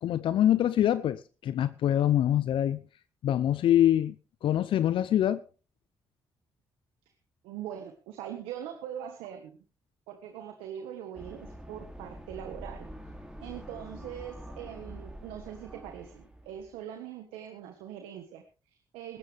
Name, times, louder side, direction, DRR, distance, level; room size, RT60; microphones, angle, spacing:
voice 1, 0.0-2.8 3.2-4.1 4.4-5.4, left 11 dB, 70° left, 0.6 m, -24 dB
voice 2, 7.4-9.6 10.1-12.9 13.4-19.2, right 10 dB, 90° right, 1.5 m, -42 dB
sound 1, 11.1-16.8, equal, 5° right, 4.2 m, -45 dB
18.0 x 14.0 x 3.4 m
supercardioid pair, 55°, 9 cm